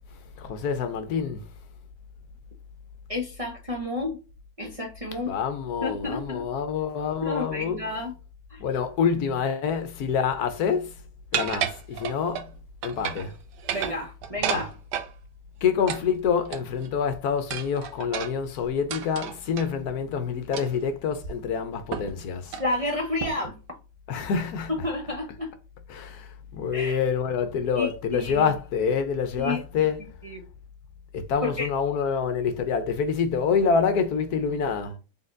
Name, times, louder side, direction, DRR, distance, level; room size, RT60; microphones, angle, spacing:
voice 1, 0.4-1.5 5.3-7.8 8.6-10.9 11.3-12.5 12.8-13.3 14.4-14.7 15.6-22.6 24.1-24.7 25.9-30.0 31.1-35.0, left 6 dB, 70° left, 1.1 m, -27 dB
voice 2, 3.1-4.2 4.6-5.4 5.8-6.5 7.2-8.1 8.5-8.6 13.7-14.7 22.6-23.5 24.1-24.2 24.7-25.5 26.7-27.0 27.8-28.5 29.4-29.9 30.2-30.5 31.4-31.7, left 2 dB, 30° right, 0.7 m, -31 dB
sound 1, 11.3-12.5 12.8-13.3 13.6-15.1 15.9-16.9 17.5-19.7 20.5-20.8 21.2-21.3 21.9-22.2 22.5-22.7 23.2-23.5, right 9 dB, 90° right, 1.3 m, -32 dB
4.1 x 3.7 x 2.5 m
omnidirectional pair, 1.8 m